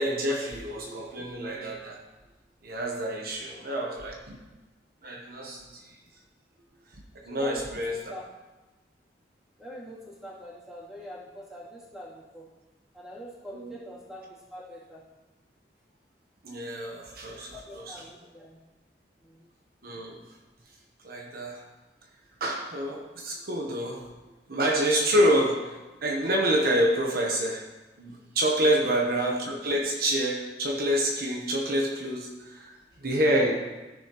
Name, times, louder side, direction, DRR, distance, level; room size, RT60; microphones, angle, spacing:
voice 1, 0.0-2.0 2.6-4.1 5.0-6.0 6.9-8.1 13.5-13.7 16.4-18.0 19.8-20.2 21.0-21.6 22.4-24.1 24.5-27.7 28.0-33.5, right 1 dB, 55° right, 0 dB, 1.0 m, -27 dB
voice 2, 3.3-3.8 7.2-7.8 8.1-8.2 9.6-12.4 12.9-15.0 17.5-18.6 19.2-19.4 28.8-28.9 33.3-33.6, equal, 5° right, -8 dB, 2.8 m, -42 dB
14.5 x 7.0 x 3.0 m, 1.1 s
head